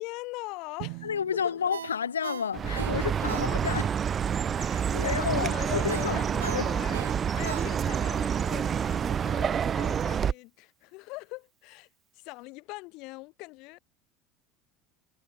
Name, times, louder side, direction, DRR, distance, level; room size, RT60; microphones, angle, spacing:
voice 1, 0.0-1.6 3.3-3.8 4.7-7.0 7.4-11.9 12.1-13.8, left 24 dB, 55° left, 3.9 m, -42 dB
Drum, 0.8-2.8, right 40 dB or more, 60° right, 4.3 m, -44 dB
voice 2, 1.0-3.9 4.6-6.7, left 7 dB, 80° left, 1.0 m, -31 dB
Ringtone, 1.7-4.0 4.3-4.5 5.9-8.1 8.5-8.6, right 8 dB, 80° right, 2.5 m, -40 dB
Chirp tweet, 2.5-10.3, right 8 dB, 35° right, 0.7 m, -28 dB
figure-of-eight pair, 70°, 0 cm